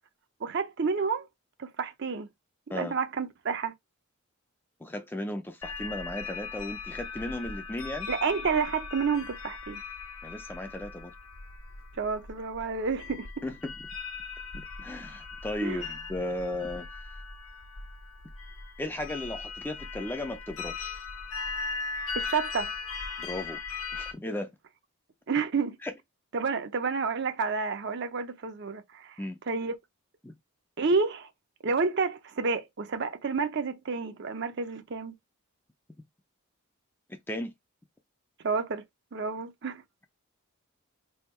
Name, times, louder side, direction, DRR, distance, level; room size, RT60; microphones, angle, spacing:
voice 1, 0.4-1.3 1.6-2.3 2.7-3.7 8.1-9.8 11.9-13.4 15.6-15.9 22.1-22.7 25.3-25.8 26.3-29.2 29.5-29.7 30.8-31.3 31.6-35.1 38.4-38.8 39.1-39.8, right 5 dB, 50° right, 0.5 m, -30 dB
voice 2, 4.8-8.1 10.2-11.1 13.4-13.7 14.5-16.9 18.8-21.0 23.2-23.6 23.9-24.5 25.8-25.9 29.2-29.4 30.2-30.3 37.1-37.5, left 1 dB, 10° left, 0.4 m, -35 dB
sound 1, 5.6-24.1, left 4 dB, 75° left, 0.9 m, -39 dB
3.5 x 2.3 x 4.2 m
head